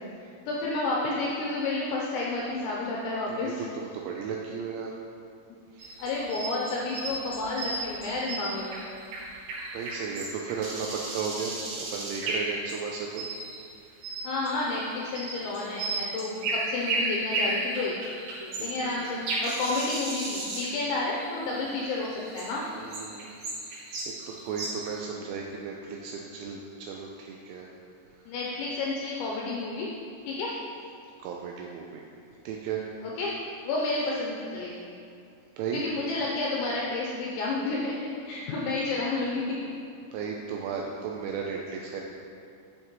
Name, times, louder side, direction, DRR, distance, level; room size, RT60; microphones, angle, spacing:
voice 1, 0.0-3.7 6.0-8.9 14.2-17.9 18.4-22.6 28.3-29.9 30.3-30.6 33.0-33.4 33.6-34.9 35.7-39.4, left 3 dB, 85° left, -3 dB, 2.6 m, -31 dB
voice 2, 3.9-4.9 9.7-11.6 11.9-13.2 18.6-19.0 22.7-23.4 24.4-27.7 31.2-32.0 32.5-32.8 35.6-35.8 40.1-42.0, right 6 dB, 85° right, 0 dB, 2.7 m, -35 dB
sound 1, 5.8-13.6 14.0-25.0, right 2 dB, 60° right, 3.1 m, -34 dB
10.5 x 7.3 x 3.1 m, 2.4 s
omnidirectional pair, 6.0 m